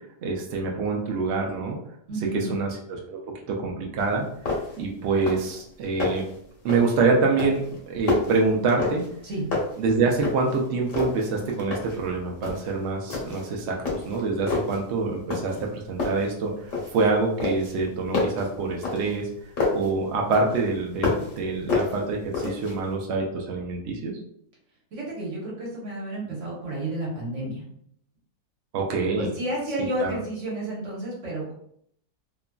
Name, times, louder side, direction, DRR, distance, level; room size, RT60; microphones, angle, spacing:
voice 1, 0.2-1.8 2.3-3.2 3.5-4.2 4.8-6.2 6.6-9.0 9.8-16.5 16.9-19.3 19.7-24.1 28.7-29.3 30.0-30.2, right 3 dB, 80° right, 0 dB, 0.5 m, -26 dB
voice 2, 2.1-2.6 9.2-9.5 24.9-27.6 29.2-31.5, right 1 dB, 55° right, -4 dB, 1.2 m, -31 dB
sound 1, 4.0-4.1 4.5-4.9 5.1-5.6 5.8-6.3 6.7-7.0 7.4-9.2 9.5-10.6 10.9-12.0 12.4-12.7 13.1-13.5 13.9-14.8 15.3-15.7 16.0-17.1 17.4-19.9 20.3-21.4 21.7-22.8, left 3 dB, 60° left, 1.1 m, -29 dB
2.9 x 2.5 x 2.2 m, 0.69 s
omnidirectional pair, 1.7 m